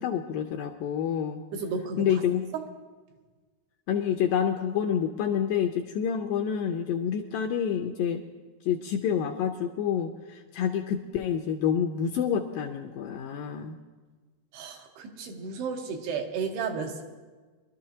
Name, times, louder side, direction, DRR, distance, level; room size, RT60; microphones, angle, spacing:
voice 1, 0.0-1.4 2.0-2.5 3.9-8.2 8.7-13.8, left 8 dB, 80° left, 4 dB, 2.0 m, -28 dB
voice 2, 1.5-2.1 2.5-2.6 14.5-17.0, right 5 dB, 90° right, 2 dB, 3.2 m, -33 dB
23.5 x 12.5 x 2.8 m, 1.4 s
omnidirectional pair, 4.5 m